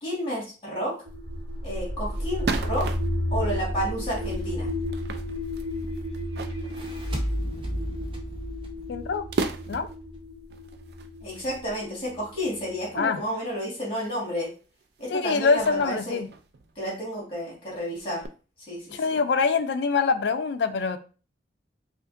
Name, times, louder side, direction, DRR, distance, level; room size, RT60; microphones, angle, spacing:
voice 1, 0.0-0.9 1.6-2.9 3.3-4.7 11.2-14.5 15.0-16.2 16.8-18.2 18.7-19.2, equal, 30° left, -4 dB, 2.1 m, -31 dB
sound 1, 1.0-1.1 1.5-1.6 2.1-3.4 4.0-7.7 8.1-8.3 8.7-8.8 9.3-10.1 10.5-12.7 13.3-13.4 14.1-14.3 14.6-15.1 15.6-17.1 17.4-17.5 17.8-18.3, right 4 dB, 60° right, 0.4 m, -36 dB
sound 2, 1.1-12.9, left 1 dB, 75° right, 1.2 m, -33 dB
sound 3, 6.5-9.9, equal, 30° right, 0.7 m, -33 dB
voice 2, 8.9-9.2 9.7-9.9 13.0-13.2 15.1-16.3 18.9-21.0, left 5 dB, 70° left, 9 dB, 0.4 m, -24 dB
5.1 x 2.5 x 2.5 m, 0.36 s
head